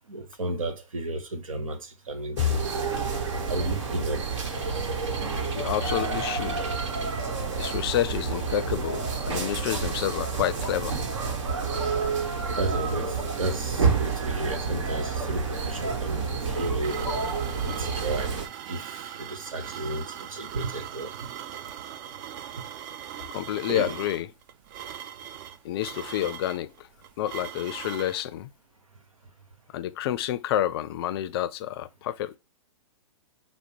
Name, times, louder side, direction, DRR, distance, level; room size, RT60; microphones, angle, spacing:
voice 1, 0.1-2.8 3.5-4.3 4.7-4.8 5.4-5.6 12.5-17.0 17.6-18.4 18.7-21.3 22.6-22.7 23.7-23.9, right 2 dB, 85° right, 1.0 m, -33 dB
sound 1, 2.4-18.5, right 5 dB, 65° right, 1.2 m, -29 dB
voice 2, 5.5-6.7 7.6-11.0 23.3-24.3 25.6-26.9 27.2-28.5 29.7-32.3, left 12 dB, 50° left, 0.4 m, -29 dB
sound 2, 16.1-28.2, right 10 dB, 40° right, 0.4 m, -40 dB
5.0 x 2.0 x 4.6 m
hypercardioid pair, 120°, 17 cm